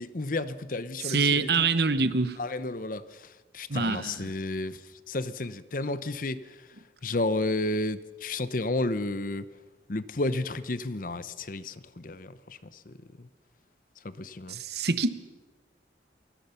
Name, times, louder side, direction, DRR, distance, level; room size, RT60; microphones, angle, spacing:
voice 1, 0.0-1.7 2.4-3.3 3.5-4.8 5.1-6.4 7.0-9.4 9.9-12.6 12.9-13.3 14.0-14.6, left 2 dB, 45° left, 0.8 m, -32 dB
voice 2, 1.0-2.4 3.7-4.3 14.5-15.1, right 4 dB, 60° right, 1.1 m, -25 dB
28.5 x 17.5 x 5.8 m
head